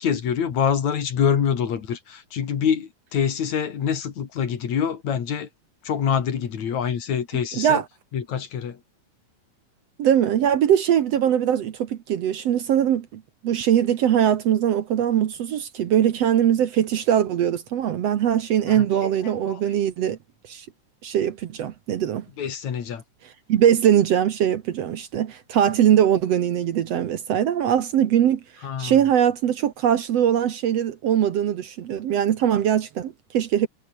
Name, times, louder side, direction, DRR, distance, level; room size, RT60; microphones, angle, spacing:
voice 1, 0.0-5.5 5.8-7.8 8.1-8.8 18.7-19.6 22.4-23.0 28.6-29.0, left 7 dB, 65° left, 3.6 m, -25 dB
voice 2, 10.0-20.2 20.5-20.7 21.0-22.3 23.5-28.4 28.8-33.7, right 10 dB, 60° right, 2.0 m, -21 dB
omnidirectional pair, 3.6 m